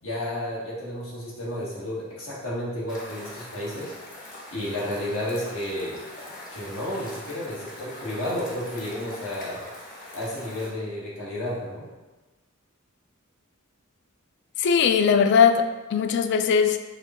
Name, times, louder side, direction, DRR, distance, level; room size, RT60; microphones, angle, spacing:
voice 1, 0.0-3.9 4.5-6.0 6.5-9.6 10.1-11.9, left 1 dB, 75° left, -6 dB, 1.4 m, -32 dB
sound 1, 2.9-10.7, left 1 dB, 40° left, 1.0 m, -42 dB
voice 2, 14.6-16.8, left 6 dB, 55° left, 9 dB, 0.3 m, -20 dB
4.8 x 2.2 x 4.2 m, 1.2 s
head